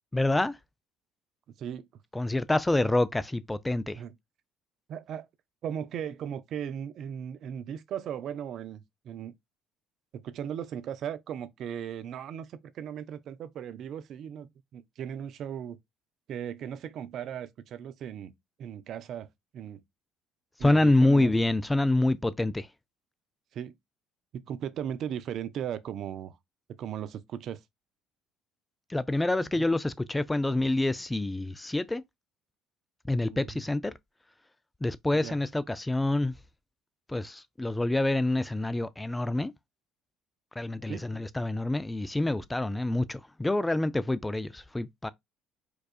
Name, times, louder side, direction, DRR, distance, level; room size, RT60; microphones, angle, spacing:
voice 1, 0.1-0.6 2.1-4.0 20.6-22.7 28.9-32.0 33.1-33.9 34.8-36.3 37.1-39.5 40.6-45.1, left 2 dB, 15° left, 0.4 m, -27 dB
voice 2, 1.6-1.9 3.9-4.1 4.9-5.3 5.6-9.3 10.1-15.8 16.3-18.3 18.6-19.3 19.5-19.8 20.6-21.3 23.5-23.7 24.3-26.4 26.8-27.6 29.6-29.7 33.2-33.6 35.2-35.4 40.9-41.1, right 9 dB, 60° right, 0.4 m, -37 dB
4.6 x 2.4 x 2.4 m
hypercardioid pair, 65°, 0 cm